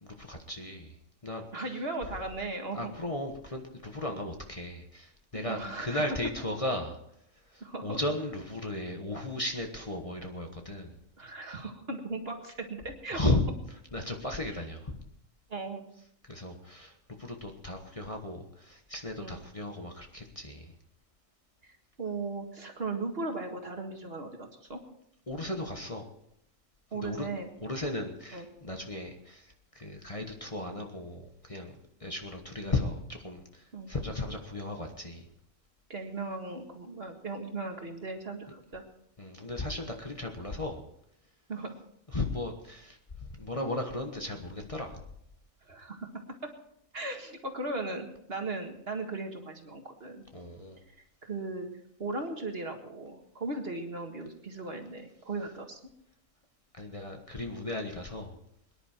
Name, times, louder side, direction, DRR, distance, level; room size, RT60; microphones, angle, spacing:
voice 1, 0.0-1.0 1.2-1.6 2.7-7.0 7.5-11.0 13.1-13.4 13.9-15.0 16.3-16.9 17.2-20.7 25.3-26.1 26.9-27.3 27.6-29.5 29.7-35.3 39.2-40.8 42.1-45.0 50.3-50.8 56.8-58.4, left 2 dB, 25° left, 3 dB, 1.3 m, -35 dB
voice 2, 1.5-2.9 5.3-6.2 7.6-8.0 11.2-13.2 15.5-15.8 19.2-19.4 21.6-24.8 26.9-27.5 28.3-28.5 33.7-33.9 35.9-38.8 41.5-41.8 45.7-46.1 46.4-46.5 46.9-50.2 51.2-51.7 52.0-55.8, right 3 dB, 50° right, 4 dB, 2.0 m, -37 dB
23.0 x 10.5 x 4.4 m, 0.74 s
omnidirectional pair, 1.4 m